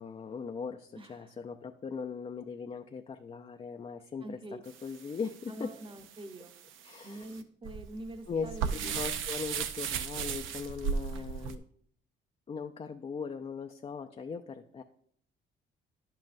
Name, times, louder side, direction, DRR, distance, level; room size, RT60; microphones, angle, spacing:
voice 1, 0.0-5.7 6.8-7.4 8.3-11.6 12.5-14.8, left 5 dB, 30° left, 5 dB, 0.4 m, -39 dB
voice 2, 1.0-1.3 4.2-4.6 5.5-6.5 7.0-9.0 11.1-11.5, right 1 dB, 25° right, 8 dB, 0.9 m, -45 dB
sound 1, 4.7-11.6, right 7 dB, 85° right, 0.6 m, -37 dB
10.5 x 7.5 x 2.6 m, 0.64 s
cardioid pair, 90°, 20 cm